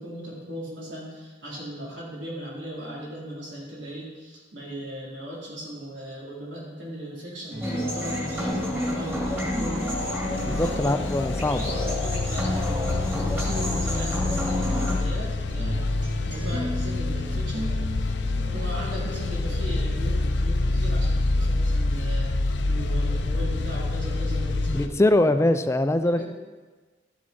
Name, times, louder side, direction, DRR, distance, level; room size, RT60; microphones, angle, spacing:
voice 1, 0.0-11.1 11.5-15.9 16.2-25.1 26.2-26.3, equal, 85° right, -5 dB, 3.4 m, -37 dB
sound 1, 7.5-14.2 14.5-22.2 22.5-23.5, equal, 45° right, 2.2 m, -39 dB
sound 2, 7.6-15.0, left 1 dB, 15° right, 2.3 m, -30 dB
sound 3, 8.4-24.9, left 2 dB, 70° left, 0.6 m, -27 dB
voice 2, 10.4-11.7 24.7-26.2, left 1 dB, 15° left, 9 dB, 0.4 m, -22 dB
12.5 x 7.5 x 4.3 m, 1.3 s
head